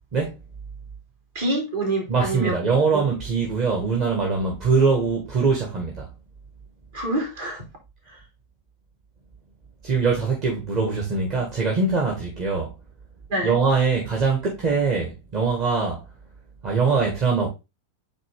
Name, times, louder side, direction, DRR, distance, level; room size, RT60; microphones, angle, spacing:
voice 1, 1.3-2.6 2.9-3.1 6.9-7.6 8.1-8.2 13.3-13.6, right 2 dB, 55° right, 3.1 m, -26 dB
voice 2, 2.1-6.1 9.8-12.7 13.4-16.0 16.6-17.5, right 4 dB, 40° right, 1.8 m, -22 dB
8.8 x 3.3 x 3.5 m
figure-of-eight pair, 90°, 0 cm